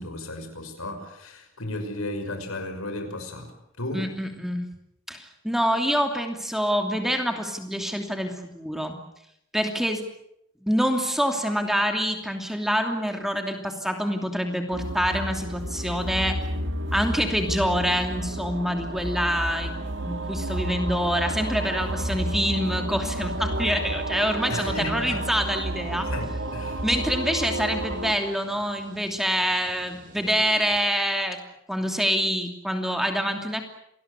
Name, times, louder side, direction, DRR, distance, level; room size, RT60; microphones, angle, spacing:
voice 1, 0.0-4.1 24.5-25.2 26.1-26.8, left 1 dB, 85° left, 6 dB, 6.0 m, -34 dB
voice 2, 3.9-4.7 5.1-9.0 9.5-10.0 10.6-16.4 16.9-26.1 26.8-31.4 31.7-33.6, equal, ahead, 4 dB, 2.8 m, -26 dB
sound 1, 14.7-28.1, right 1 dB, 55° right, 1.9 m, -31 dB
sound 2, 23.3-30.8, right 2 dB, 40° right, 2.4 m, -43 dB
27.5 x 20.0 x 8.2 m, 0.78 s
head